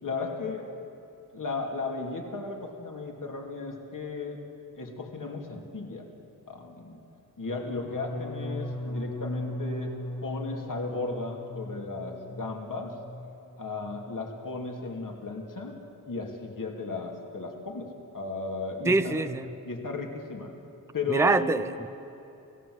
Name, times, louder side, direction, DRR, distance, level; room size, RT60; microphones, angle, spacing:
voice 1, 0.0-0.7 1.3-4.4 4.8-6.1 6.5-7.0 7.4-13.0 13.6-15.8 16.1-19.3 19.7-20.5 20.9-21.6, left 3 dB, 65° left, 2 dB, 2.8 m, -35 dB
sound 1, 7.5-13.4 13.7-14.2 14.5-14.9, left 1 dB, 85° left, 3.2 m, -38 dB
voice 2, 18.9-19.4 21.1-21.9, right 3 dB, 10° right, 12 dB, 0.5 m, -25 dB
28.5 x 17.0 x 7.9 m, 2.9 s
wide cardioid pair, 120°, 35 cm